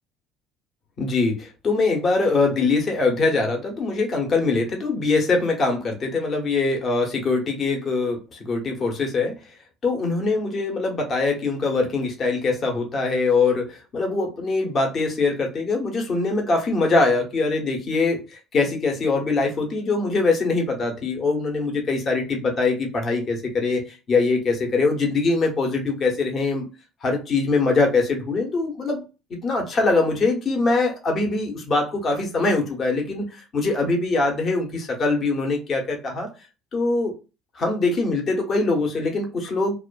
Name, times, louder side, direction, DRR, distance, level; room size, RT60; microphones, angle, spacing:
voice 1, 1.0-9.4 9.8-26.7 27.0-29.0 29.3-36.3 36.7-37.1 37.5-39.7, left 3 dB, 40° left, 2 dB, 0.9 m, -23 dB
2.3 x 2.3 x 2.5 m, 0.30 s
cardioid pair, 110°, 0 cm